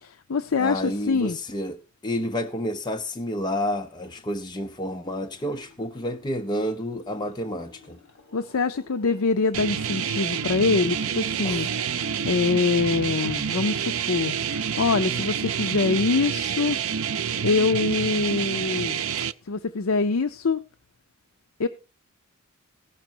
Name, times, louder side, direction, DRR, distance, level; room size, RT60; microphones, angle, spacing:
voice 1, 0.0-1.4 8.3-16.8 17.4-19.0 19.5-20.6 21.6-21.7, left 4 dB, 70° left, 0.6 m, -24 dB
voice 2, 0.6-8.0 11.4-11.8, equal, 20° left, 0.7 m, -30 dB
sound 1, 3.9-15.0, left 3 dB, 50° left, 4.7 m, -54 dB
sound 2, 9.5-19.3, right 8 dB, 65° right, 0.6 m, -28 dB
17.5 x 6.1 x 4.5 m
head